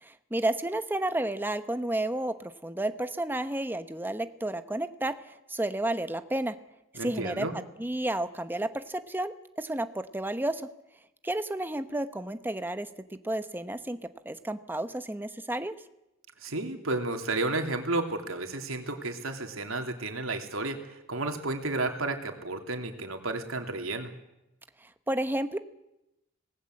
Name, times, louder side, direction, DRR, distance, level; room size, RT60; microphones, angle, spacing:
voice 1, 0.0-5.1 5.5-6.5 7.0-7.5 7.8-10.6 11.2-12.9 13.2-14.0 14.2-15.7 25.1-25.6, right 1 dB, 10° right, 10 dB, 1.1 m, -31 dB
voice 2, 6.9-7.6 16.4-24.1, right 2 dB, 80° right, 4 dB, 3.1 m, -32 dB
26.5 x 19.5 x 7.9 m, 0.91 s
head